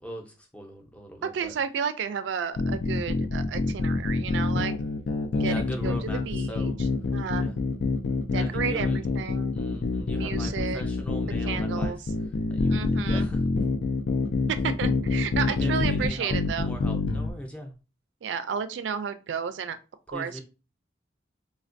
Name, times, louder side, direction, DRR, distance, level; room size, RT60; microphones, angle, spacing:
voice 1, 0.0-1.5 5.3-6.8 7.4-7.6 8.4-9.0 9.5-11.9 12.5-13.4 14.6-14.7 15.5-17.7 20.1-20.4, equal, 5° left, 2 dB, 0.5 m, -40 dB
voice 2, 1.2-4.7 5.4-7.5 8.3-9.6 10.2-10.8 11.4-12.1 12.7-13.3 14.6-16.7 18.2-19.8 20.1-20.4, right 7 dB, 85° right, 11 dB, 0.3 m, -32 dB
sound 1, 2.6-17.3, left 3 dB, 85° left, 0.4 m, -26 dB
3.3 x 2.2 x 2.5 m, 0.31 s
head